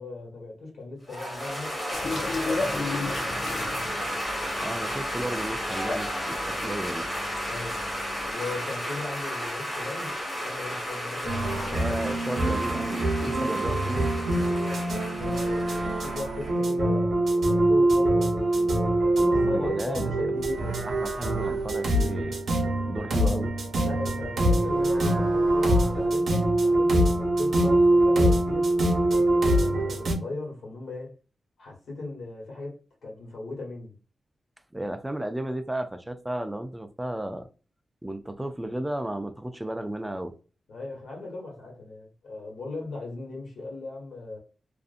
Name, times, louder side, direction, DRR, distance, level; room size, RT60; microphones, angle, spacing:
voice 1, 0.0-1.8 2.1-3.8 7.5-7.8 8.2-11.9 13.4-13.5 14.5-20.8 23.8-28.7 29.1-31.1 31.6-34.0 40.7-44.4, left 3 dB, 90° left, 1.3 m, -38 dB
sound 1, 1.1-16.6, equal, 15° left, 1.5 m, -33 dB
sound 2, 1.9-8.3, left 3 dB, 60° left, 0.5 m, -35 dB
voice 2, 4.6-7.1 11.7-14.1 19.4-20.3 20.8-22.4 22.9-23.5 34.7-37.5 38.0-40.3, right 1 dB, 10° right, 0.3 m, -33 dB
sound 3, 11.3-30.2, right 1 dB, 70° right, 0.7 m, -24 dB
2.5 x 2.5 x 2.4 m
wide cardioid pair, 150°, 0 cm